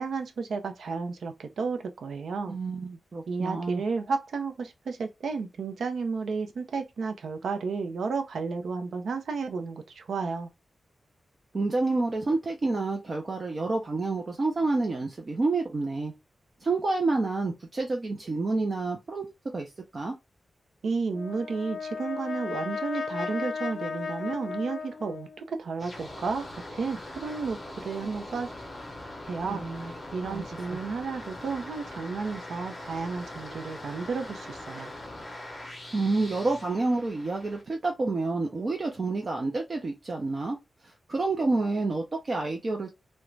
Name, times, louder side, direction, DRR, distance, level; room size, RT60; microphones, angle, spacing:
voice 1, 0.0-2.6 3.3-10.5 20.8-27.6 27.8-28.5 29.3-29.6 30.1-34.9, right 4 dB, 90° right, 0.5 m, -32 dB
voice 2, 2.5-3.8 11.5-16.1 16.6-19.3 19.5-20.1 29.4-29.9 30.2-30.4 30.7-30.8 35.9-40.6 40.8-42.9, right 3 dB, 35° right, 0.4 m, -29 dB
Brass instrument, 21.1-25.5, left 5 dB, 70° left, 0.5 m, -35 dB
sound 1, 25.8-37.6, left 1 dB, 20° left, 0.7 m, -42 dB
2.4 x 2.1 x 3.0 m
wide cardioid pair, 175°, 0 cm